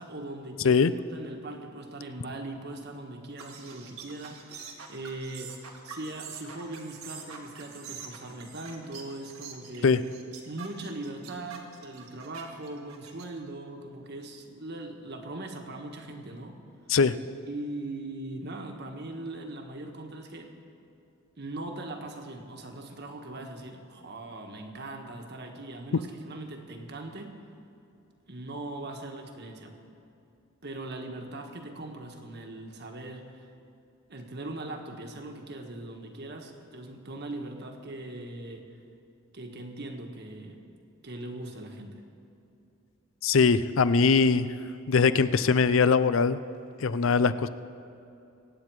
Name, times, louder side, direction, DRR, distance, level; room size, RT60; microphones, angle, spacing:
voice 1, 0.0-0.8 1.1-5.6 5.8-10.0 10.4-16.6 17.5-20.5 21.4-27.4 28.3-29.7 30.6-33.5 34.1-38.7 39.3-40.6 41.0-42.0, right 2 dB, 50° right, 3 dB, 1.5 m, -40 dB
sound 1, 3.4-13.4, right 6 dB, 85° right, 1.8 m, -45 dB
voice 2, 43.2-44.5 44.9-46.4 46.8-47.5, left 5 dB, 65° left, 14 dB, 0.5 m, -21 dB
24.0 x 9.5 x 4.8 m, 2.7 s
head